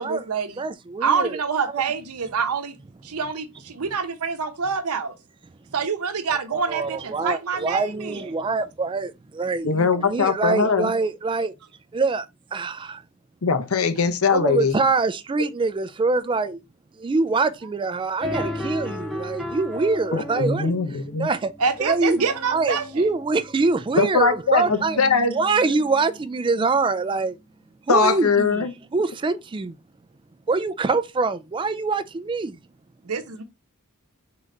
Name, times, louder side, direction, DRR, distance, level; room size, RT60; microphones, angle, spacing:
voice 1, 0.0-0.6 1.0-2.7 3.0-5.1 5.7-8.2 21.6-23.1 33.0-33.4, right 5 dB, 80° right, 0.7 m, -26 dB
voice 2, 0.6-1.4 1.7-1.8 6.3-11.5 11.9-13.0 14.3-16.6 17.0-20.8 21.2-21.5 21.8-22.2 22.5-25.0 25.3-27.4 27.9-28.7 28.9-29.8 30.5-32.6, right 3 dB, 20° right, 0.3 m, -24 dB
voice 3, 9.6-10.9 13.4-14.8 20.1-21.3 24.0-25.4 25.6-25.8 27.9-28.7, left 5 dB, 70° left, 0.7 m, -21 dB
sound 1, 18.2-26.4, left 1 dB, ahead, 0.9 m, -35 dB
3.8 x 3.2 x 3.8 m
head